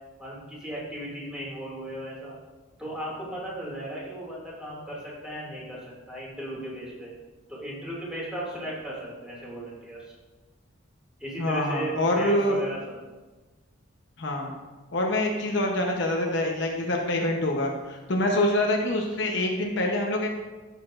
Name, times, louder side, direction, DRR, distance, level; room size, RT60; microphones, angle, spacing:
voice 1, 0.2-2.3 2.8-5.8 6.1-7.1 7.5-10.1 11.2-13.0, right 1 dB, 5° right, -6 dB, 2.3 m, -36 dB
voice 2, 11.4-12.6 14.2-14.5 14.9-20.3, left 1 dB, 55° left, 1 dB, 0.9 m, -25 dB
12.0 x 6.7 x 2.5 m, 1.2 s
head